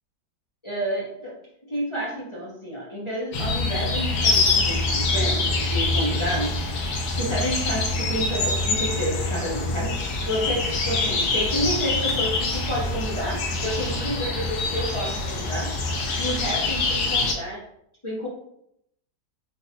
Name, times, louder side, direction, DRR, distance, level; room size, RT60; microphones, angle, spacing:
voice 1, 0.6-1.4 1.6-6.6 7.1-15.7 16.2-17.6 18.0-18.3, equal, 25° left, -6 dB, 0.7 m, -30 dB
sound 1, 3.3-17.3, left 3 dB, 90° left, 1.4 m, -25 dB
3.9 x 3.8 x 2.7 m, 0.74 s
omnidirectional pair, 1.8 m